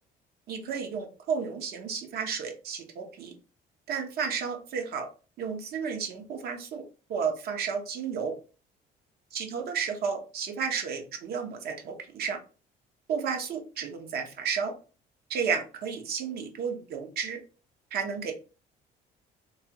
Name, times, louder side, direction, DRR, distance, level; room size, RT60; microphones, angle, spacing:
voice 1, 0.5-3.3 3.9-5.1 5.4-6.8 7.1-8.3 9.3-12.4 13.1-14.7 15.3-17.4 17.9-18.3, right 6 dB, 70° right, 4 dB, 0.8 m, -32 dB
3.1 x 2.3 x 2.8 m, 0.35 s
cardioid pair, 110°, 17 cm